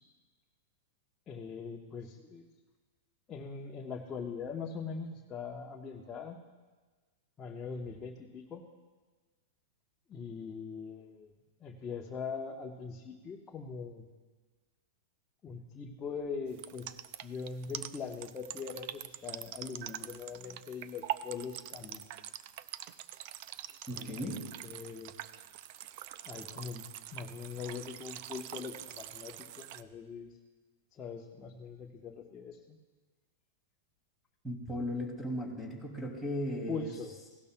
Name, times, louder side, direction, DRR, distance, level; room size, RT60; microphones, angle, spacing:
voice 1, 1.3-2.5 3.3-6.4 7.4-8.6 10.1-11.3 11.6-14.1 15.4-22.0 23.9-25.1 26.2-30.4 30.9-32.6 36.7-37.1, left 5 dB, 25° left, -1 dB, 1.0 m, -42 dB
sound 1, 16.5-29.8, right 13 dB, 55° right, 0.4 m, -44 dB
voice 2, 23.9-24.4 34.4-36.9, equal, 5° right, 1 dB, 2.6 m, -36 dB
17.0 x 12.0 x 2.2 m, 1.3 s
hypercardioid pair, 125°, 0 cm